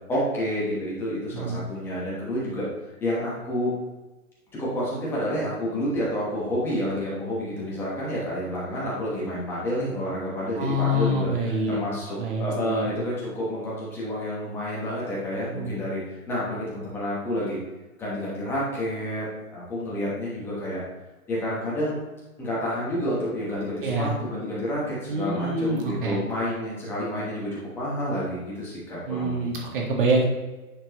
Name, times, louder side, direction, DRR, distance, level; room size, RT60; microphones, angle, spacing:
voice 1, 0.1-2.7 3.0-3.7 4.6-17.6 18.0-20.8 21.3-22.0 22.4-29.7, equal, 5° left, -7 dB, 1.1 m, -29 dB
voice 2, 1.3-1.6 10.6-11.8 12.2-12.9 15.5-15.7 23.8-24.1 25.1-26.2 29.1-30.3, right 1 dB, 35° right, 0 dB, 1.6 m, -26 dB
9.6 x 4.5 x 2.9 m, 1.1 s
hypercardioid pair, 165°, 45 cm